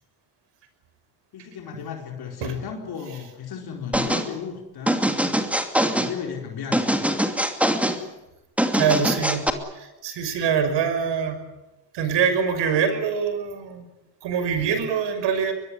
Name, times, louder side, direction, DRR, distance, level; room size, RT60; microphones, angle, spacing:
voice 1, 1.3-5.0 5.9-7.0, left 7 dB, 50° left, 2 dB, 4.4 m, -34 dB
sound 1, 3.9-4.3 4.9-6.1 6.7-8.0 8.6-9.5, equal, 5° right, 2.6 m, -23 dB
voice 2, 8.7-9.5 9.7-11.4 11.9-13.9 14.2-15.5, right 7 dB, 60° right, 9 dB, 6.0 m, -24 dB
23.0 x 22.0 x 9.7 m, 1.0 s
supercardioid pair, 100°, 48 cm